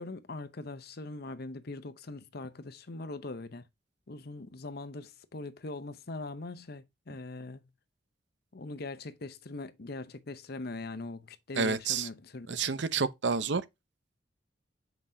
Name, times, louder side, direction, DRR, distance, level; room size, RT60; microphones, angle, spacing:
voice 1, 0.0-3.7 4.1-7.6 8.5-12.6, left 2 dB, 55° left, 0.8 m, -41 dB
voice 2, 11.6-12.1 12.5-13.6, right 5 dB, 65° right, 0.7 m, -29 dB
7.6 x 5.2 x 2.7 m
head